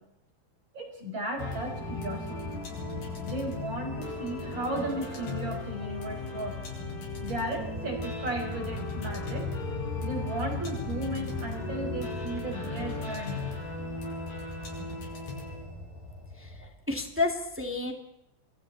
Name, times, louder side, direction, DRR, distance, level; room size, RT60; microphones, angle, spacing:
voice 1, 0.7-2.6 3.2-6.6 7.2-9.5 10.0-13.5, right 1 dB, 20° right, 1 dB, 6.2 m, -35 dB
sound 1, 1.4-16.7, left 3 dB, 45° left, 6.8 m, -36 dB
voice 2, 16.4-17.9, left 3 dB, 5° right, 3 dB, 1.2 m, -31 dB
30.0 x 23.0 x 4.4 m, 0.77 s
omnidirectional pair, 5.8 m